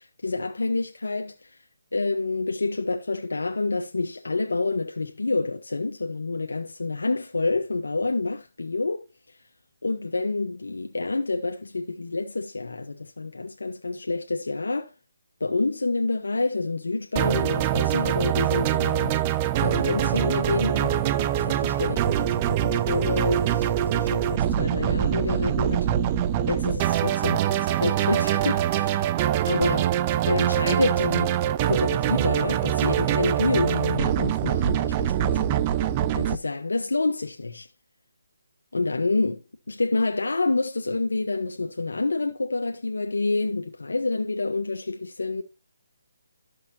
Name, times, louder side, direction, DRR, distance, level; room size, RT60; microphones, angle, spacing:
voice 1, 0.2-1.5 1.9-9.0 9.8-14.9 15.4-19.2 19.6-21.0 21.4-25.9 26.5-29.1 29.4-29.9 30.3-31.4 31.7-35.5 36.1-37.7 38.7-39.4 39.7-45.4, left 3 dB, 85° left, 1.0 m, -28 dB
sound 1, 17.2-36.4, right 11 dB, 25° right, 0.4 m, -24 dB
13.0 x 6.4 x 2.8 m
hypercardioid pair, 160°, 0 cm